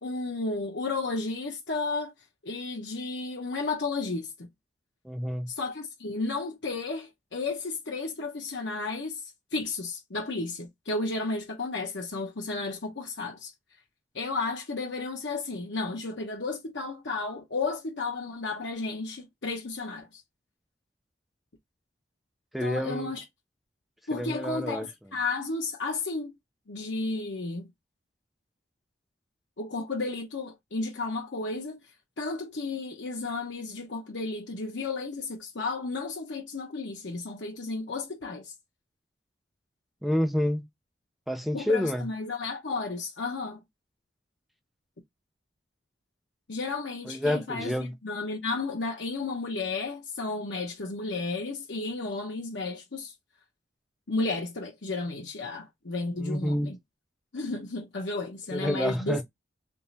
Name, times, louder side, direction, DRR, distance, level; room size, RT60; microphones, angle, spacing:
voice 1, 0.0-2.1 2.4-4.5 5.5-9.2 9.5-13.5 14.1-20.2 22.6-23.2 24.1-26.3 26.7-27.7 29.6-31.8 32.2-38.5 41.5-43.6 46.5-53.1 54.1-56.8 57.3-59.2, left 3 dB, 85° left, 0.9 m, -33 dB
voice 2, 5.0-5.5 22.5-23.1 24.1-24.8 40.0-40.6 41.3-42.1 47.1-47.9 56.2-56.7 58.5-59.2, left 1 dB, ahead, 0.6 m, -28 dB
3.6 x 3.0 x 2.7 m
head